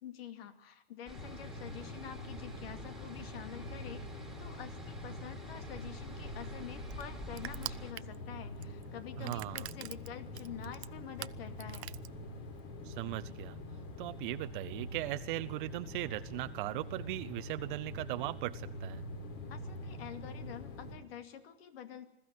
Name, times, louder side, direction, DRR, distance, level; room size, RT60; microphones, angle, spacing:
voice 1, 0.0-4.0 4.4-11.9 19.5-22.1, left 9 dB, 65° left, 10 dB, 2.4 m, -47 dB
sound 1, 1.1-21.0, left 1 dB, 45° left, 4.9 m, -45 dB
sound 2, 1.1-7.9, right 2 dB, ahead, 2.8 m, -50 dB
Crushing, 5.8-12.6, right 12 dB, 85° right, 0.7 m, -47 dB
voice 2, 9.2-9.7 12.8-13.6 14.0-19.0, right 18 dB, 50° right, 11 dB, 0.8 m, -38 dB
21.5 x 14.0 x 9.4 m, 0.83 s
hypercardioid pair, 120°, 32 cm